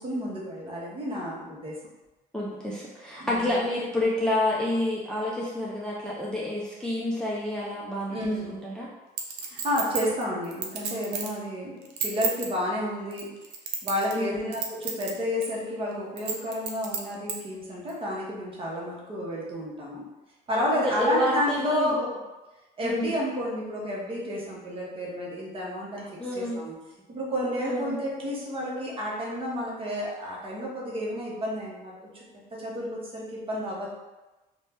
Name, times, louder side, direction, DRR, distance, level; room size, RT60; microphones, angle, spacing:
voice 1, 0.0-1.7 3.2-3.5 8.1-8.6 9.4-13.3 13.8-20.1 20.5-22.2 22.8-26.1 26.4-26.7 27.1-32.2 32.6-33.9, equal, 35° right, -4 dB, 0.9 m, -31 dB
voice 2, 2.3-8.9 14.1-14.5 20.7-21.9 22.8-23.1 26.2-26.6 27.6-28.0, left 1 dB, 5° left, -6 dB, 0.4 m, -29 dB
Chink clink, 9.2-11.4 11.8-12.5 13.1-14.2 14.5-15.1 15.4-15.5 16.2-17.4 17.9-18.0, right 6 dB, 85° right, 0.5 m, -31 dB
2.6 x 2.1 x 3.3 m, 1.1 s
cardioid pair, 110°, 17 cm